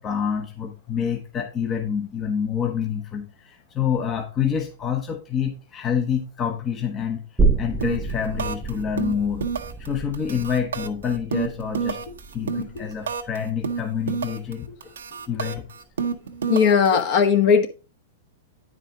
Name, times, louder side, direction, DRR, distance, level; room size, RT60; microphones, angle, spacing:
voice 1, 0.0-7.2 7.6-9.4 9.8-12.0 12.3-14.9 15.3-15.6, left 7 dB, 25° left, 1.0 m, -27 dB
sound 1, 7.4-14.7 15.0-15.1, right 4 dB, 15° right, 0.5 m, -29 dB
sound 2, 7.8-8.1 8.4-8.7 9.0-9.9 10.1-13.4 13.6-14.5 14.8-17.0, right 6 dB, 85° right, 0.9 m, -29 dB
voice 2, 16.5-17.7, left 6 dB, 50° left, 1.4 m, -18 dB
9.0 x 5.0 x 3.8 m
hypercardioid pair, 120°, 0 cm